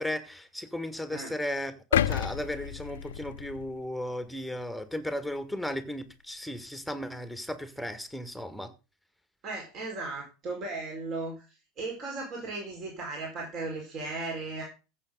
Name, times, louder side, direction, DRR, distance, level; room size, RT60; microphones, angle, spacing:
voice 1, 0.0-8.7, left 1 dB, ahead, 1.8 m, -35 dB
sound 1, 1.9-4.1 4.6-4.7, left 10 dB, 65° left, 0.6 m, -30 dB
voice 2, 9.4-11.5 11.8-14.6, right 3 dB, 40° right, 4.8 m, -36 dB
15.0 x 7.6 x 3.9 m
figure-of-eight pair, 80°, 0 cm